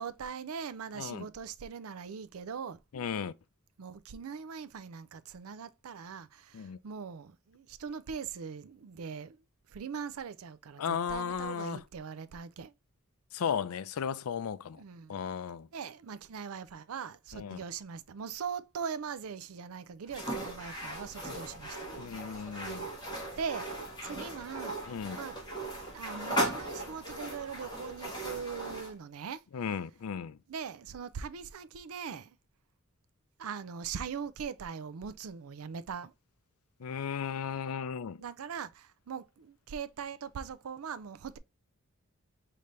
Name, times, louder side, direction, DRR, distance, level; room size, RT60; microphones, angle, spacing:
voice 1, 0.0-2.8 3.8-9.4 9.7-12.7 14.8-15.2 15.7-21.9 23.4-23.7 24.0-25.4 25.9-29.4 30.5-32.4 33.4-36.1 38.2-41.4, right 6 dB, 80° right, 0.4 m, -41 dB
voice 2, 2.9-3.3 6.5-6.8 10.8-11.8 13.3-14.8 15.1-15.7 17.3-17.6 22.0-22.9 24.9-25.2 29.5-30.4 36.8-38.2, left 7 dB, 80° left, 0.4 m, -35 dB
sound 1, 20.1-28.9, right 1 dB, 20° left, 1.5 m, -38 dB
5.2 x 2.8 x 3.1 m
head